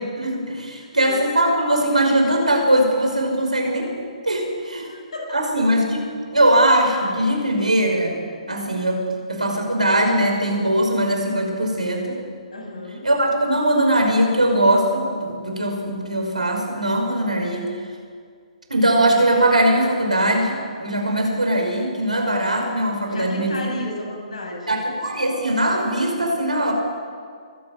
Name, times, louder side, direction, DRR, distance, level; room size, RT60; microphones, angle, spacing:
voice 1, 0.0-4.8 5.3-6.1 6.3-8.2 8.5-12.2 13.0-17.7 18.7-23.6 24.7-26.7, right 1 dB, 80° right, 2 dB, 5.5 m, -20 dB
voice 2, 0.8-1.2 4.7-5.4 12.5-13.0 23.1-24.8, left 1 dB, 65° left, 0 dB, 7.7 m, -33 dB
24.0 x 12.0 x 9.3 m, 2.1 s
figure-of-eight pair, 130°, 4 cm